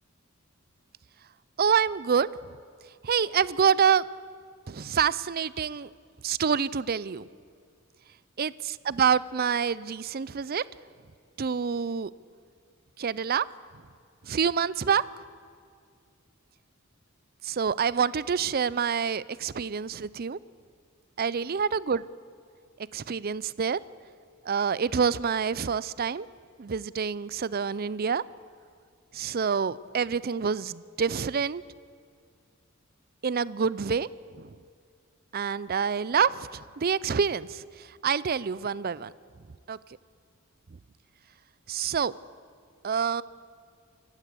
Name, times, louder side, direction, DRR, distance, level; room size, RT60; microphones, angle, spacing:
voice 1, 1.6-2.3 3.0-4.0 4.7-5.9 6.2-7.3 8.4-10.6 11.4-12.1 13.0-13.5 14.2-15.0 17.4-20.4 21.2-22.0 22.9-23.8 24.5-26.3 26.6-28.2 29.1-31.6 33.2-34.1 34.4-34.5 35.3-39.1 39.7-39.8 41.7-42.1 42.8-43.2, right 6 dB, 45° right, 20 dB, 0.5 m, -27 dB
25.5 x 15.0 x 8.4 m, 2.2 s
head